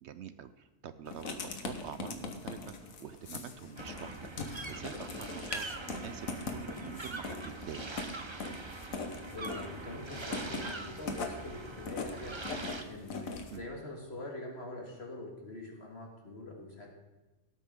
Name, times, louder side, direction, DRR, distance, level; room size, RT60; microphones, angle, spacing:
voice 1, 0.0-7.9 13.5-13.6, right 9 dB, 65° right, 12 dB, 0.7 m, -46 dB
Writing, 1.1-13.6, left 3 dB, 85° left, 1.6 m, -41 dB
sound 1, 3.8-12.8, right 3 dB, 25° right, 0.7 m, -43 dB
voice 2, 8.8-16.9, left 2 dB, 50° left, 0 dB, 2.1 m, -44 dB
17.5 x 8.4 x 3.7 m, 1.2 s
omnidirectional pair, 1.4 m